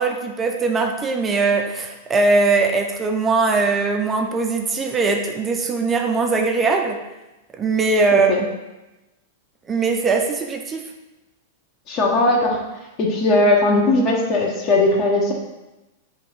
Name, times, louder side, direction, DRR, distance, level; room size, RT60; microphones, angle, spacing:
voice 1, 0.0-7.0 7.6-8.3 9.7-10.8, right 4 dB, 20° right, 3 dB, 0.4 m, -20 dB
voice 2, 11.9-12.6 13.0-15.3, left 2 dB, 40° left, -1 dB, 0.6 m, -18 dB
2.6 x 2.3 x 4.1 m, 1.0 s
hypercardioid pair, 105°, 0 cm